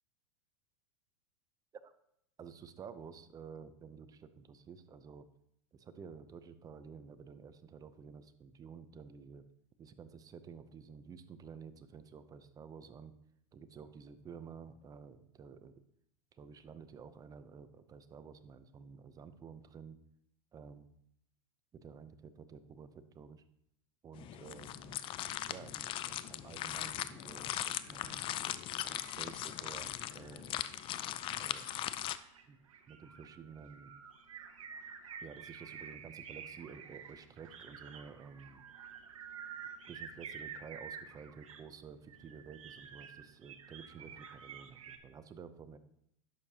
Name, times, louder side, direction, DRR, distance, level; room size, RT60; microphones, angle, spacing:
voice 1, 2.4-5.3 5.7-9.5 9.8-13.1 13.5-15.7 16.3-20.0 20.5-20.9 21.7-23.4 24.0-25.0 25.5-28.2 28.8-30.6 31.4-31.7 32.5-32.6 32.9-33.9 35.2-38.6 39.9-45.8, right 6 dB, 20° right, 12 dB, 0.6 m, -51 dB
sound 1, 24.1-32.2, left 13 dB, 30° left, 0.4 m, -39 dB
sound 2, 27.2-45.0, right 7 dB, 90° right, 0.9 m, -51 dB
11.0 x 6.6 x 2.8 m, 0.76 s
hypercardioid pair, 115°, 17 cm